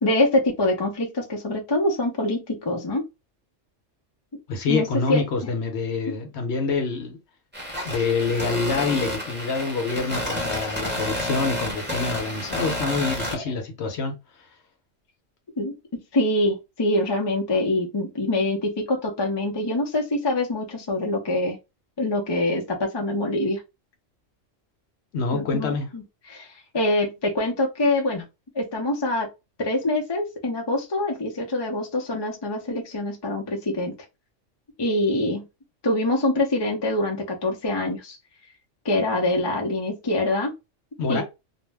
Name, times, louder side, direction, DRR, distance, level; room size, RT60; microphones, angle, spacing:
voice 1, 0.0-3.0 4.7-5.2 6.1-6.2 13.3-13.4 15.6-21.6 22.0-23.6 25.3-26.5 26.7-28.2 28.5-29.3 29.6-33.9 34.8-35.5 35.8-38.2 38.8-40.5 41.1-41.2, left 1 dB, 30° left, 0.4 m, -25 dB
voice 2, 4.5-7.2 7.8-14.1 25.1-25.9 41.0-41.2, left 4 dB, 65° left, 1.0 m, -26 dB
sound 1, 7.5-13.4, equal, 10° right, 0.9 m, -30 dB
2.5 x 2.1 x 3.3 m
omnidirectional pair, 1.3 m